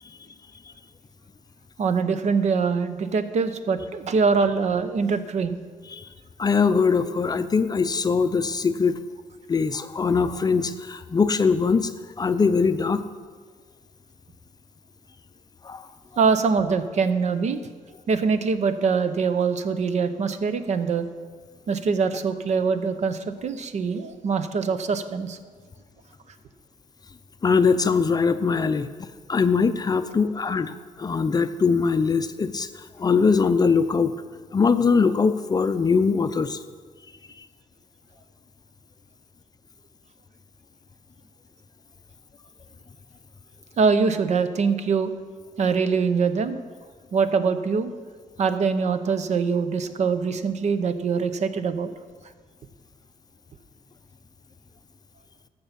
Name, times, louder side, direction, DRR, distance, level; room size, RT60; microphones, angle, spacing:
voice 1, 1.8-5.6 16.2-17.6 18.1-21.1 21.7-25.4 43.8-45.1 45.6-46.6 47.1-47.9 48.4-51.9, right 5 dB, 55° right, 11 dB, 0.7 m, -23 dB
voice 2, 6.4-9.0 9.5-11.9 12.2-13.0 15.6-15.8 27.4-28.9 29.3-32.7 33.0-34.1 34.5-36.6, left 5 dB, 30° left, 11 dB, 0.5 m, -21 dB
14.0 x 5.5 x 5.8 m, 1.5 s
cardioid pair, 100°, 14 cm